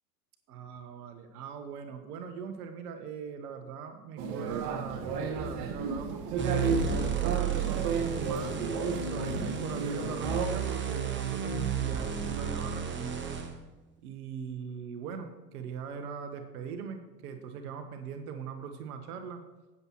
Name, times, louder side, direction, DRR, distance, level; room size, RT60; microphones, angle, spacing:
voice 1, 0.5-6.6 7.0-8.6 9.1-13.2 14.0-19.4, right 6 dB, 65° right, 7 dB, 1.4 m, -41 dB
sound 1, 4.2-10.5, right 5 dB, 50° right, 1.6 m, -33 dB
sound 2, 6.4-13.5, right 6 dB, 25° right, 1.4 m, -32 dB
16.0 x 7.3 x 3.1 m, 1.1 s
hypercardioid pair, 90°, 48 cm